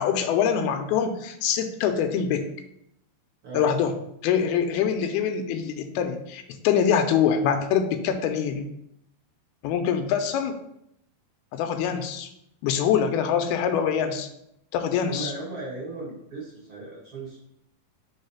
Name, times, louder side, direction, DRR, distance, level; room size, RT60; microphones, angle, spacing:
voice 1, 0.0-2.5 3.5-3.9 4.2-8.7 9.6-10.6 11.5-12.3 12.6-14.3 14.7-15.3, left 7 dB, 85° left, 7 dB, 2.6 m, -24 dB
voice 2, 15.1-17.4, right 3 dB, 40° right, -7 dB, 2.2 m, -37 dB
5.6 x 3.8 x 5.5 m, 0.76 s
omnidirectional pair, 4.4 m